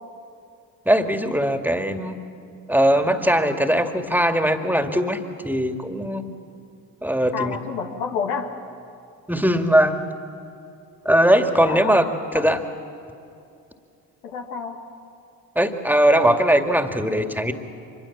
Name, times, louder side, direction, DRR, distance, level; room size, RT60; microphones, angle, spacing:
voice 1, 0.9-2.2 2.7-6.3 7.0-7.6 9.3-10.0 11.0-12.1 12.3-12.6 15.6-17.5, equal, 5° right, 6 dB, 2.2 m, -20 dB
voice 2, 7.3-8.5 11.6-11.9 12.3-12.4 14.2-14.8, left 6 dB, 85° left, 3 dB, 1.9 m, -28 dB
25.0 x 21.5 x 7.3 m, 2.6 s
hypercardioid pair, 45°, 45 cm